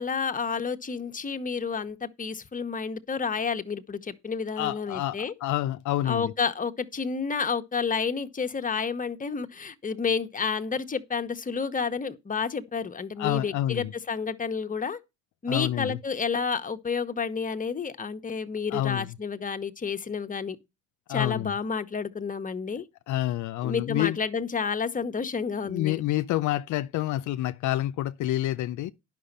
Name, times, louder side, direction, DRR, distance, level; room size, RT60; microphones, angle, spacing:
voice 1, 0.0-5.3 6.0-15.0 15.4-20.6 21.1-22.8 23.6-26.0, left 5 dB, 25° left, 1.0 m, -30 dB
voice 2, 4.6-6.3 13.2-13.9 15.5-16.0 18.7-19.1 21.1-21.5 23.1-24.2 25.6-28.9, left 14 dB, 80° left, 0.5 m, -28 dB
10.0 x 6.0 x 5.4 m
cardioid pair, 90°, 30 cm